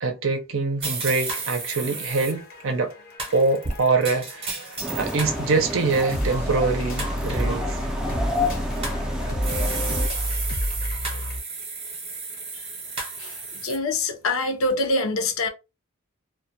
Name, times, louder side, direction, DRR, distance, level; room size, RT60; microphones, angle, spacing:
voice 1, 0.0-2.9 3.3-4.6 5.0-7.8, right 3 dB, 65° right, 0.5 m, -24 dB
sound 1, 0.8-2.3 3.2-5.4 5.8-6.3 7.0-7.4 8.3-9.0 9.4-13.8, right 3 dB, 25° right, 0.7 m, -33 dB
sound 2, 1.2-11.4, equal, 45° left, 0.6 m, -31 dB
sound 3, 4.8-10.1, left 1 dB, 5° right, 0.3 m, -30 dB
voice 2, 13.2-15.5, left 2 dB, 80° left, 0.6 m, -25 dB
2.2 x 2.1 x 2.7 m
head